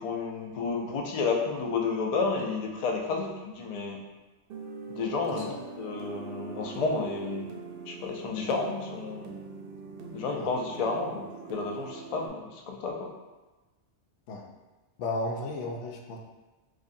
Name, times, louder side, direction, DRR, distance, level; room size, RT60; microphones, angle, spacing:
voice 1, 0.0-4.0 4.9-7.5 7.9-9.3 10.1-13.1, left 4 dB, 60° left, 1 dB, 0.4 m, -31 dB
sound 1, 4.5-12.3, right 4 dB, 60° right, 0.7 m, -43 dB
voice 2, 15.0-16.2, left 2 dB, 90° left, 1 dB, 0.9 m, -34 dB
5.0 x 2.1 x 2.6 m, 1.2 s
omnidirectional pair, 1.2 m